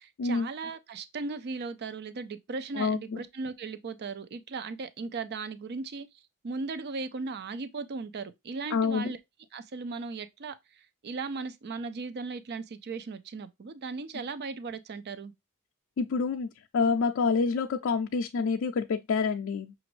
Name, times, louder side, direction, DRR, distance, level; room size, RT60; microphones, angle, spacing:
voice 1, 0.0-6.1 6.4-9.2 9.5-15.3, right 4 dB, 50° right, 0.5 m, -37 dB
voice 2, 2.8-3.2 8.7-9.1 16.0-16.5 16.7-19.7, left 5 dB, 60° left, 0.4 m, -27 dB
5.9 x 2.5 x 3.0 m
head